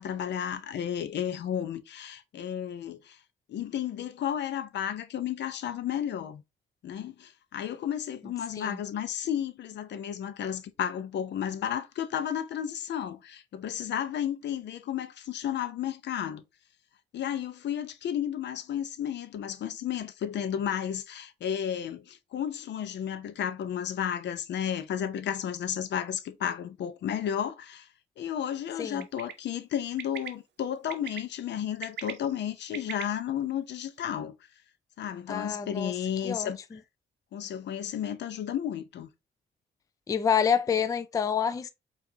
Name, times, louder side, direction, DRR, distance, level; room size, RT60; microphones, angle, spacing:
voice 1, 0.0-3.2 3.5-6.4 6.8-16.4 17.1-27.9 28.2-34.3 35.0-36.8 37.3-39.1, left 9 dB, 60° left, 0.6 m, -33 dB
Bird, 29.0-29.3 30.0-30.3 30.9-31.2 31.7-33.0, right 9 dB, 60° right, 0.7 m, -38 dB
voice 2, 35.3-35.9 36.2-36.5 40.1-41.7, left 7 dB, 15° left, 0.3 m, -27 dB
4.7 x 2.5 x 2.7 m
cardioid pair, 90°, 20 cm